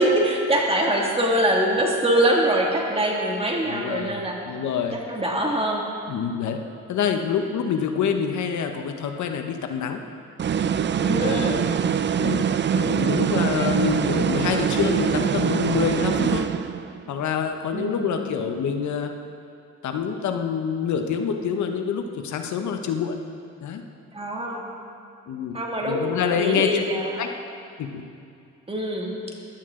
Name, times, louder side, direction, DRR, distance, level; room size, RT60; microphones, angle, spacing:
voice 1, 0.0-4.6 4.9-5.9 11.0-11.7 13.2-13.8 17.7-18.2 24.1-24.7 25.5-26.1 26.4-27.3 28.7-29.2, right 1 dB, 20° right, -1 dB, 2.3 m, -24 dB
voice 2, 3.7-4.2 4.5-5.0 6.1-6.6 6.9-10.0 11.0-11.7 12.2-12.4 12.8-16.5 17.1-19.1 19.8-23.2 23.6-23.8 25.3-25.6 25.8-26.8 27.2-27.3 27.8-28.0, left 7 dB, 70° left, 5 dB, 1.0 m, -26 dB
sound 1, 10.4-17.0, right 8 dB, 40° right, 0.5 m, -23 dB
16.5 x 11.5 x 3.8 m, 2.5 s
cardioid pair, 90°, 30 cm